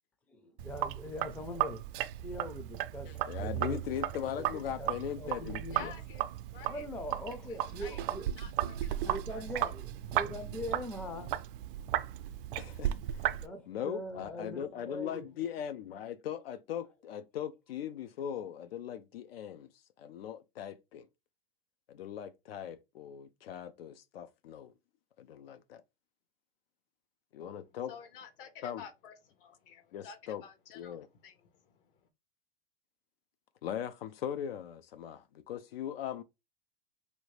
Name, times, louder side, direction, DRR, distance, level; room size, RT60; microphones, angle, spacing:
voice 1, 0.3-1.8 2.2-3.8 4.4-4.9 5.2-5.9 6.7-8.3 9.0-11.3 13.4-15.3, equal, 5° left, 0.4 m, -42 dB
Sink (filling or washing), 0.6-13.5, right 12 dB, 65° right, 0.4 m, -35 dB
voice 2, 3.1-5.9 12.6-13.4 13.7-19.7 20.0-21.1 21.9-24.7 25.2-25.8 27.3-27.9 28.6-28.8 29.9-30.4 30.7-31.1 33.6-36.2, left 9 dB, 90° left, 0.5 m, -40 dB
voice 3, 5.7-6.9 7.5-8.0 8.4-9.4 27.9-31.8, left 7 dB, 65° left, 1.0 m, -51 dB
3.1 x 2.7 x 3.1 m
hypercardioid pair, 120°, 29 cm